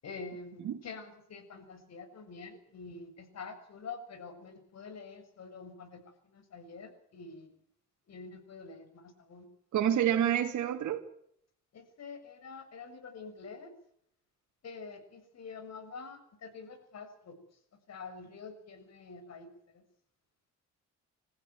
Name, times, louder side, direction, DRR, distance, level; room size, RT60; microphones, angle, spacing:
voice 1, 0.0-7.5 8.1-9.5 11.7-13.7 14.6-17.4 17.9-19.8, left 4 dB, 60° left, 7.0 m, -47 dB
voice 2, 9.7-11.0, right 10 dB, 70° right, 2.7 m, -28 dB
26.5 x 15.0 x 9.4 m
cardioid pair, 90°, 30 cm